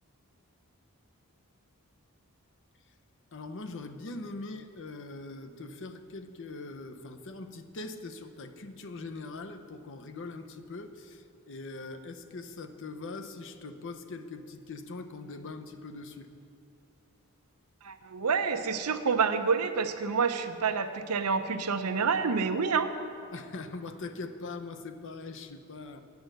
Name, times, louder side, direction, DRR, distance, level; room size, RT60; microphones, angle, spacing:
voice 1, 3.3-16.3 23.3-26.0, left 3 dB, 55° left, 8 dB, 0.7 m, -42 dB
voice 2, 17.8-22.9, right 5 dB, 90° right, 9 dB, 0.7 m, -28 dB
9.3 x 9.0 x 6.6 m, 2.5 s
head